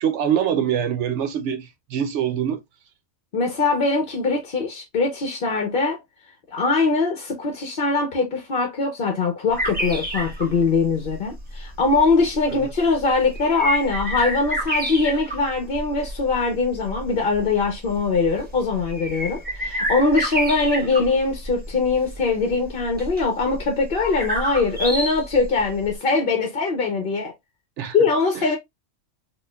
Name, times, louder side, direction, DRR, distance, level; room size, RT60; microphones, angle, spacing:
voice 1, 0.0-2.6 12.5-12.6 27.8-28.0, right 9 dB, 80° right, 0.9 m, -24 dB
voice 2, 3.3-6.0 6.5-27.3 27.9-28.6, left 3 dB, 50° left, 0.9 m, -22 dB
sound 1, 9.5-25.9, equal, 10° right, 0.9 m, -30 dB
4.1 x 2.5 x 2.2 m
omnidirectional pair, 1.2 m